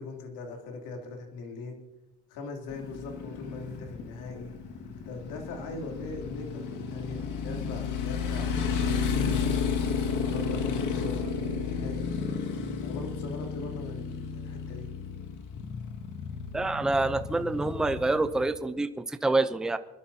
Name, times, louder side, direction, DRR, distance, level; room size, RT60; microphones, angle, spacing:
voice 1, 0.0-1.8 2.3-4.5 5.0-12.1 12.8-14.9, left 3 dB, 80° left, 1 dB, 3.2 m, -41 dB
Motorcycle, 2.7-18.4, left 5 dB, 65° left, 2.1 m, -32 dB
voice 2, 16.5-19.8, right 2 dB, ahead, 10 dB, 0.5 m, -27 dB
25.0 x 12.5 x 2.8 m, 1.0 s
cardioid pair, 115°, 33 cm